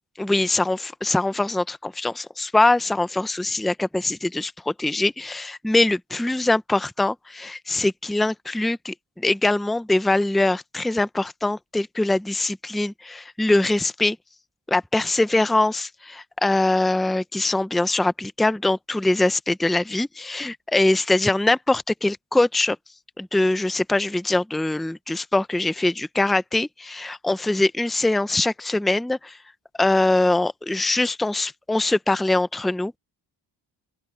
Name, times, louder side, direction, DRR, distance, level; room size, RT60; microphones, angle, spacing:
voice 1, 0.2-14.2 14.7-22.8 23.2-29.3 29.8-33.0, left 2 dB, ahead, 0.5 m, -22 dB
open air
wide cardioid pair, 145°, 42 cm